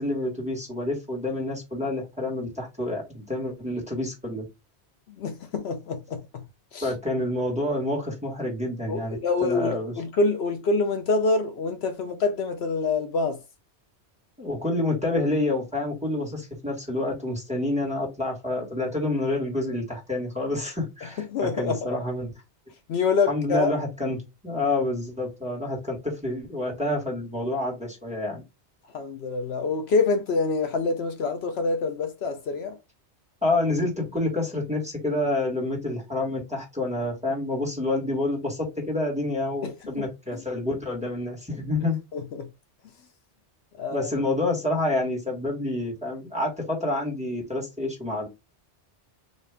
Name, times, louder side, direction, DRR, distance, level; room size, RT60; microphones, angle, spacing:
voice 1, 0.0-4.5 6.8-9.9 14.4-22.3 23.3-24.2 24.4-28.4 33.4-42.0 43.9-48.3, left 2 dB, 5° right, 1.4 m, -28 dB
voice 2, 5.1-6.4 6.7-6.9 8.9-13.4 21.3-21.8 22.9-23.7 28.9-32.8 39.6-40.1 40.3-40.4 42.1-42.5 43.8-44.1, left 4 dB, 70° left, 0.8 m, -26 dB
4.2 x 2.6 x 3.4 m
omnidirectional pair, 1.1 m